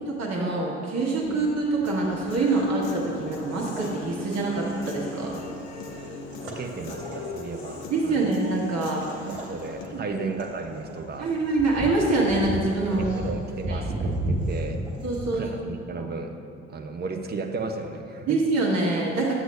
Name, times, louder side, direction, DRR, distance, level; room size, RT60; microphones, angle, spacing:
voice 1, 0.2-5.4 7.9-9.1 9.9-10.2 11.2-13.1 13.7-13.8 15.0-15.5 16.0-16.1 18.3-19.3, right 2 dB, 45° right, -2 dB, 1.4 m, -25 dB
sound 1, 1.2-15.4, right 1 dB, 70° right, 1.2 m, -36 dB
Human voice / Guitar, 1.9-9.9, left 1 dB, 60° left, 0.8 m, -38 dB
voice 2, 6.6-8.3 9.3-11.6 13.0-14.8 15.3-16.4 16.7-18.4, right 3 dB, 25° right, 5 dB, 0.7 m, -34 dB
10.5 x 7.8 x 2.4 m, 2.6 s
figure-of-eight pair, 45°, 36 cm